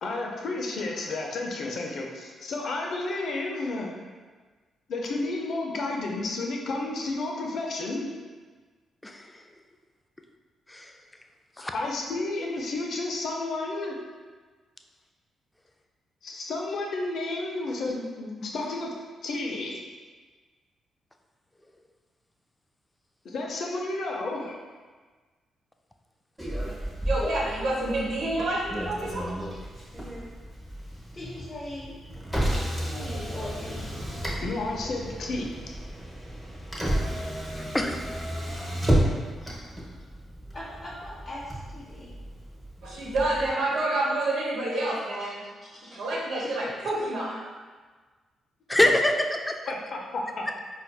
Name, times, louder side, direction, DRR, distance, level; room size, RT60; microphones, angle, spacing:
voice 1, 0.0-3.9 4.9-8.1 11.7-13.9 16.2-18.9 19.2-19.8 23.2-24.6 34.4-35.5 48.8-48.9 49.7-50.6, left 2 dB, 65° left, 0 dB, 0.5 m, -31 dB
Motor vehicle (road), 26.4-43.5, right 1 dB, 5° right, 1.0 m, -32 dB
voice 2, 27.0-29.3 42.8-45.4 45.8-47.4, right 2 dB, 80° right, -5 dB, 0.9 m, -28 dB
voice 3, 29.2-29.7 31.1-32.0 32.8-34.0 36.9-37.1 39.4-39.6 39.9-40.0 40.5-42.1 44.7-44.9 45.2-46.5, left 1 dB, 30° left, -8 dB, 0.8 m, -42 dB
voice 4, 32.5-32.9 37.6-38.0 46.8-46.9 48.7-49.6, left 1 dB, 15° left, 4 dB, 0.4 m, -25 dB
4.3 x 2.5 x 2.3 m, 1.4 s
supercardioid pair, 60°, 0 cm